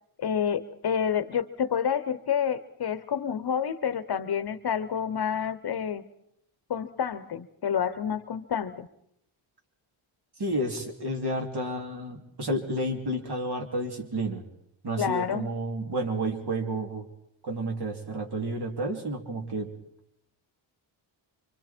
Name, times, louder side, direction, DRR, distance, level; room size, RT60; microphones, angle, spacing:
voice 1, 0.2-6.0 6.7-8.9 15.0-15.5, left 8 dB, 50° left, 12 dB, 1.0 m, -29 dB
voice 2, 10.4-14.4 14.8-17.1 17.4-19.7, right 1 dB, 50° right, 2 dB, 3.3 m, -31 dB
26.5 x 25.0 x 4.4 m, 0.74 s
wide cardioid pair, 155°, 50 cm